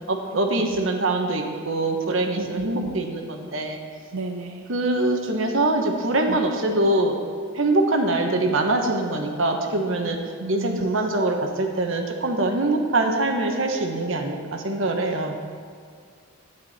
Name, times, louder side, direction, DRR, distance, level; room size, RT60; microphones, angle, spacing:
voice 1, 0.1-3.8 4.7-7.1 7.5-10.2 10.5-15.3, right 2 dB, 65° right, 3 dB, 1.2 m, -23 dB
voice 2, 2.4-3.0 4.1-4.6 6.3-6.4 10.0-10.8, right 3 dB, 90° right, 3 dB, 0.6 m, -33 dB
13.0 x 10.0 x 4.3 m, 2.1 s
head